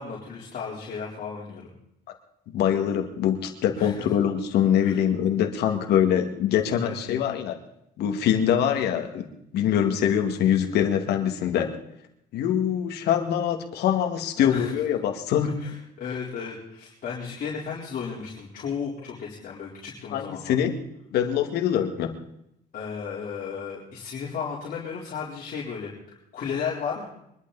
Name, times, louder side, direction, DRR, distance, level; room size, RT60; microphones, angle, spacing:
voice 1, 0.0-1.7 3.8-3.9 4.8-5.0 6.8-7.2 14.4-14.7 15.6-20.6 22.7-25.9 26.3-27.1, left 6 dB, 55° left, -5 dB, 4.1 m, -34 dB
voice 2, 2.5-7.6 8.0-9.3 9.5-11.7 12.3-15.6 20.1-20.7 21.1-22.1, left 9 dB, 80° left, 5 dB, 2.3 m, -24 dB
24.0 x 11.5 x 4.2 m, 0.77 s
cardioid pair, 110°, 17 cm